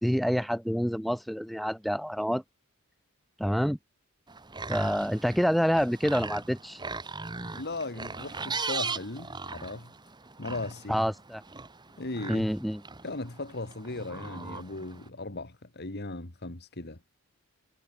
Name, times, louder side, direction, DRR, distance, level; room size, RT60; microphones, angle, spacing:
voice 1, 0.0-2.4 3.4-3.8 4.7-6.8 10.9-11.4 12.3-12.8, equal, ahead, 0.7 m, -27 dB
sound 1, 4.3-15.1, right 4 dB, 20° right, 1.5 m, -39 dB
voice 2, 7.5-9.9 10.4-11.1 12.0-12.5 13.0-17.0, left 2 dB, 50° left, 2.1 m, -37 dB
head